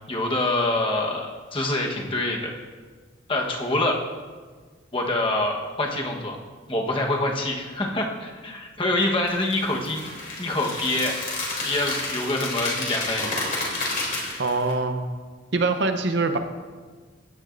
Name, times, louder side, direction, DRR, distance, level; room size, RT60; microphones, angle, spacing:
voice 1, 0.1-2.5 3.3-4.0 4.9-6.4 6.7-11.1 11.6-13.3, left 2 dB, 25° left, 1 dB, 1.1 m, -26 dB
sound 1, 9.3-14.7, left 2 dB, 45° left, 3.0 m, -30 dB
voice 2, 14.4-15.1 15.5-16.4, right 3 dB, 60° right, 8 dB, 0.8 m, -23 dB
16.0 x 9.8 x 2.6 m, 1.5 s
head